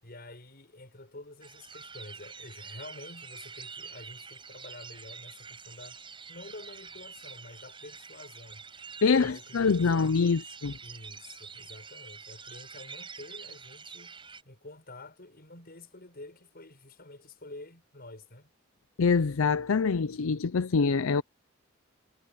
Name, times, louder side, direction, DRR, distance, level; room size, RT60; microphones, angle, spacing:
voice 1, 0.0-6.0 6.3-8.6 9.1-10.4 10.8-14.2 14.4-18.5, left 2 dB, 45° left, 7.0 m, -48 dB
sound 1, 1.4-14.4, right 5 dB, 25° right, 6.0 m, -46 dB
voice 2, 9.0-10.7 19.0-21.2, left 5 dB, 75° left, 0.5 m, -25 dB
head